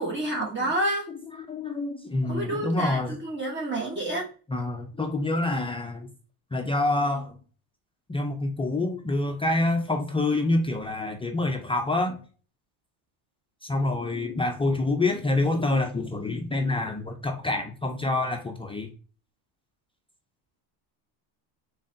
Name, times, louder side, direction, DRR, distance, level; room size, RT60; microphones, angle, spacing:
voice 1, 0.0-1.1 2.3-4.3, right 1 dB, 25° right, -2 dB, 0.9 m, -29 dB
voice 2, 1.1-3.2 4.5-6.1 6.5-7.4 8.1-12.2 13.6-18.9, left 2 dB, 15° left, 3 dB, 0.3 m, -27 dB
3.9 x 3.7 x 2.5 m, 0.38 s
supercardioid pair, 110°, 49 cm